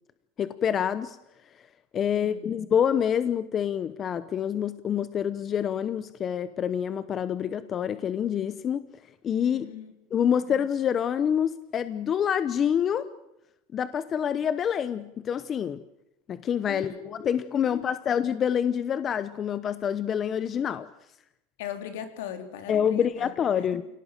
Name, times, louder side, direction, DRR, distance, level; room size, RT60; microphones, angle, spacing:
voice 1, 0.4-1.2 1.9-8.8 9.2-9.7 10.1-13.1 13.7-15.8 16.3-20.9 22.7-23.8, left 8 dB, 30° left, 14 dB, 0.9 m, -27 dB
voice 2, 2.1-2.6 9.5-9.9 16.7-17.1 17.5-18.2 21.6-23.3 23.7-23.8, left 9 dB, 75° left, 7 dB, 3.4 m, -39 dB
28.0 x 18.0 x 7.7 m, 0.89 s
supercardioid pair, 145°, 0 cm